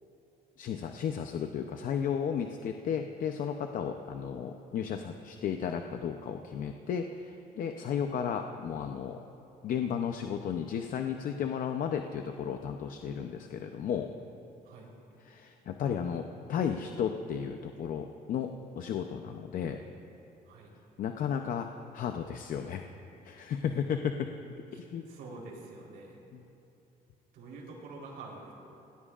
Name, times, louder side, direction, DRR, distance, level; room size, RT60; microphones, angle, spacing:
voice 1, 0.6-9.2 9.6-14.1 15.2-19.8 21.0-21.7 21.9-22.8 23.2-24.3 24.7-25.0 26.3-26.4, left 7 dB, 55° left, 5 dB, 0.7 m, -34 dB
voice 2, 25.1-26.2 27.3-28.5, right 3 dB, 90° right, -2 dB, 3.8 m, -46 dB
29.0 x 18.5 x 2.5 m, 2.8 s
cardioid pair, 135°, 16 cm